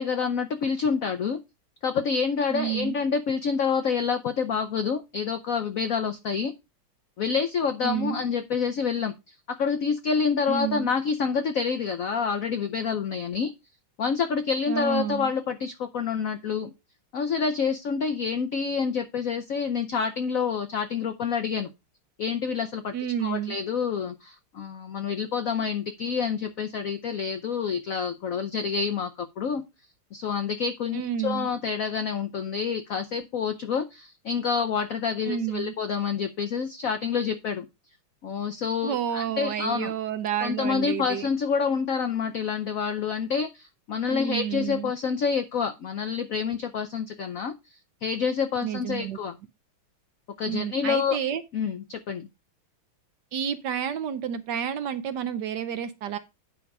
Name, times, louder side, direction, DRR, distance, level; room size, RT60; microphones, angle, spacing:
voice 1, 0.0-1.4 1.8-6.5 7.2-13.5 14.0-16.7 17.1-21.7 22.2-22.9 23.2-29.6 30.1-37.7 38.2-39.9 40.4-47.5 48.0-49.3 50.4-51.2 51.5-52.3, left 6 dB, 75° left, 0.7 m, -28 dB
voice 2, 2.5-3.0 7.8-8.2 10.5-10.9 14.7-15.3 22.9-23.6 30.9-31.5 35.2-35.7 38.8-41.3 44.1-44.9 48.6-49.2 50.5-51.4 53.3-56.2, right 9 dB, 65° right, 1.2 m, -30 dB
9.3 x 5.3 x 4.7 m
omnidirectional pair, 2.3 m